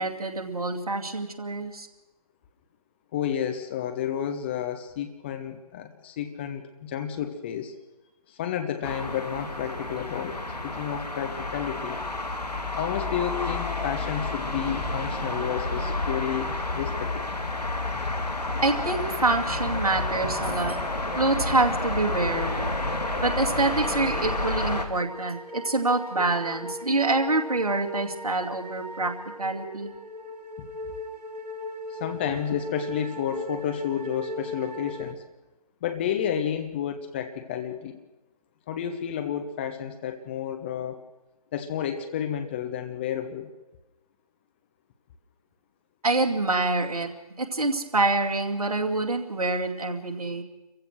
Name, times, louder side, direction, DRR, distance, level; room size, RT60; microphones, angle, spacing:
voice 1, 0.0-1.9 18.6-20.8 21.2-22.8 23.2-29.1 29.4-29.9 46.0-47.1 47.4-50.4, right 2 dB, 65° right, 2 dB, 2.5 m, -26 dB
voice 2, 3.1-7.7 8.3-12.0 12.8-17.2 17.9-18.0 31.9-35.2 35.8-38.0 38.7-41.0 41.5-43.5, left 9 dB, 15° left, 7 dB, 0.7 m, -31 dB
sound 1, 8.8-24.9, left 2 dB, 80° left, 2.4 m, -30 dB
sound 2, 23.4-35.1, left 1 dB, 85° right, 1.8 m, -39 dB
27.0 x 15.5 x 6.3 m, 1.1 s
figure-of-eight pair, 145°, 20 cm